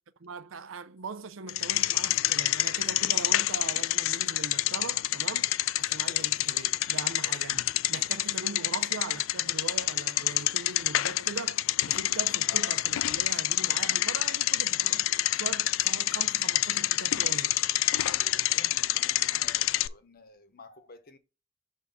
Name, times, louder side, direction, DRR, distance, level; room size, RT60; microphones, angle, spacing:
voice 1, 0.2-5.5 5.8-7.6 7.9-17.6, right 4 dB, 85° right, 0.6 m, -41 dB
Bicycle, 1.5-19.9, left 15 dB, 80° left, 0.3 m, -27 dB
voice 2, 5.9-6.3 7.2-7.4 18.0-21.2, left 3 dB, 50° left, 0.9 m, -53 dB
6.4 x 3.5 x 5.4 m
head